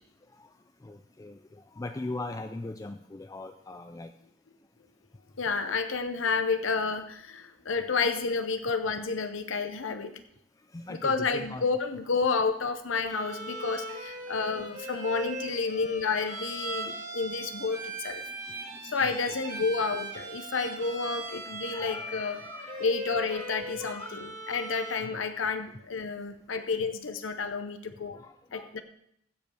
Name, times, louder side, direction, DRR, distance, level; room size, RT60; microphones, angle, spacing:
voice 1, 0.8-4.1 9.9-10.0 10.7-11.6 14.6-14.7 17.8-18.0 18.5-19.4 21.7-22.9 23.3-23.5 23.8-24.3 28.1-28.8, left 2 dB, 15° left, 7 dB, 0.4 m, -41 dB
voice 2, 5.4-10.2 10.9-18.2 18.8-22.4 22.8-28.2 28.5-28.8, left 4 dB, 70° left, 9 dB, 0.7 m, -30 dB
Bowed string instrument, 13.0-25.2, right 2 dB, 40° right, 2.1 m, -40 dB
15.5 x 5.3 x 6.2 m, 0.73 s
head